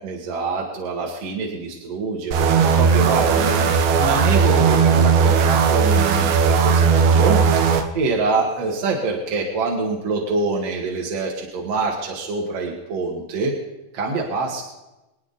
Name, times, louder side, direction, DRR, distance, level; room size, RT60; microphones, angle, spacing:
voice 1, 0.0-3.7 4.0-7.6 7.9-13.5 13.9-14.6, right 3 dB, 50° right, -2 dB, 2.2 m, -25 dB
sound 1, 2.3-7.8, right 6 dB, 70° right, 2.8 m, -17 dB
25.5 x 9.7 x 4.1 m, 1.0 s
omnidirectional pair, 4.9 m